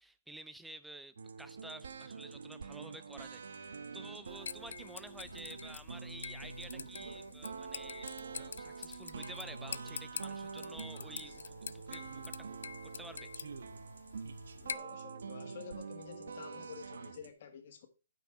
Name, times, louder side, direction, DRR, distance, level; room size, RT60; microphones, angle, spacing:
voice 1, 0.0-12.6 12.8-13.3, right 1 dB, ahead, 0.4 m, -51 dB
sound 1, 1.2-17.3, right 5 dB, 75° right, 0.9 m, -46 dB
sound 2, 4.3-14.8, left 6 dB, 70° left, 0.4 m, -47 dB
voice 2, 14.6-17.9, left 7 dB, 35° left, 1.5 m, -50 dB
9.1 x 5.3 x 4.8 m
hypercardioid pair, 175°, 0 cm